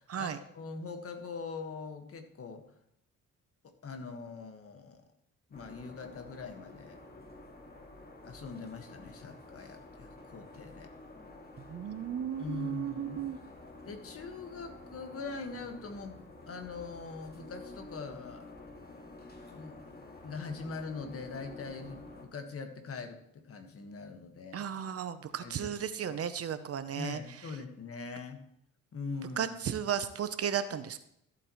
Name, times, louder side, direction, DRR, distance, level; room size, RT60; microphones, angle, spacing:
voice 1, 0.0-2.6 3.6-5.0 5.5-7.0 8.2-10.9 12.4-13.2 13.9-18.5 19.5-19.8 20.2-24.7 25.4-25.7 26.1-26.2 27.0-28.4 28.9-29.6, left 4 dB, 50° left, 5 dB, 1.7 m, -42 dB
sound 1, 5.5-22.3, left 2 dB, 30° left, 2.2 m, -50 dB
voice 2, 11.6-13.4 24.5-27.2 29.4-31.0, right 8 dB, 50° right, 11 dB, 0.9 m, -34 dB
14.0 x 8.5 x 3.2 m, 0.74 s
cardioid pair, 90°, 30 cm